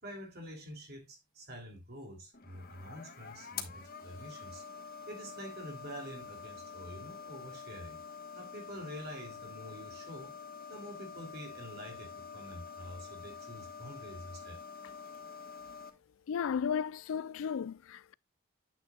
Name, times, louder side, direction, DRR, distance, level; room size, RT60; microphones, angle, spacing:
voice 1, 0.0-4.6 5.1-8.0 8.3-10.3 10.7-14.6, equal, 50° right, 3.0 m, -47 dB
sound 1, 2.3-15.9, left 6 dB, 45° left, 1.3 m, -47 dB
voice 2, 16.3-18.1, left 7 dB, 85° left, 0.3 m, -34 dB
9.2 x 8.4 x 2.3 m
head